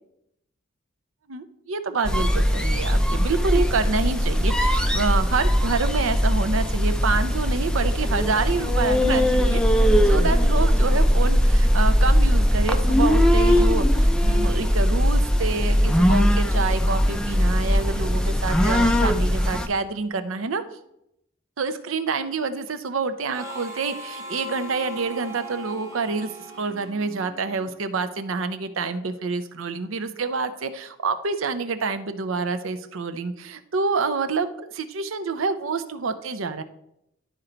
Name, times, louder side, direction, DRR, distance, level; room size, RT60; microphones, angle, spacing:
voice 1, 1.3-9.6 10.0-20.6 21.6-26.3 26.6-36.6, right 4 dB, 75° right, 10 dB, 0.6 m, -27 dB
sound 1, 2.0-19.7, equal, 5° left, 0.4 m, -20 dB
Harmonica, 23.3-27.8, right 1 dB, 15° right, 1.0 m, -39 dB
11.5 x 4.4 x 3.9 m, 0.80 s
head